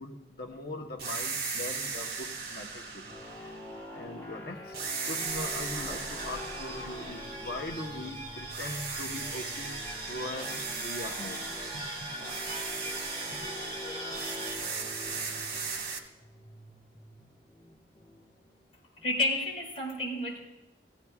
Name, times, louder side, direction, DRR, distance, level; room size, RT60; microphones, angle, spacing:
voice 1, 0.0-3.6 3.9-9.8 10.1-11.4, left 1 dB, 60° left, 1 dB, 1.1 m, -41 dB
sound 1, 1.0-4.3 4.7-8.1 8.5-16.0, right 5 dB, 60° right, 1.6 m, -38 dB
sound 2, 3.1-19.6, left 2 dB, 15° left, 1.5 m, -46 dB
sound 3, 5.3-14.6, right 1 dB, 35° right, 3.4 m, -41 dB
voice 2, 19.0-20.4, left 1 dB, 35° left, -5 dB, 5.0 m, -30 dB
18.0 x 15.5 x 2.4 m, 0.85 s
head